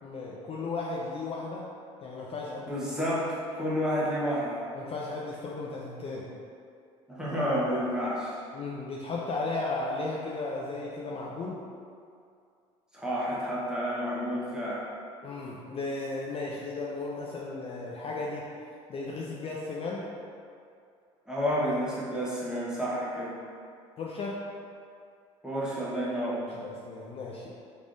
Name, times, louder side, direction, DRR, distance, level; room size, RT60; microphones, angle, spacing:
voice 1, 0.0-1.7 2.0-2.9 4.7-6.3 8.5-11.6 15.2-18.5 18.9-20.1 24.0-24.4 26.5-27.5, left 3 dB, 40° left, -3 dB, 0.4 m, -35 dB
voice 2, 2.7-4.6 7.1-8.4 12.9-14.8 21.3-23.3 25.4-26.4, equal, 5° right, -8 dB, 1.1 m, -30 dB
3.4 x 3.2 x 2.6 m, 2.3 s
hypercardioid pair, 75°, 15 cm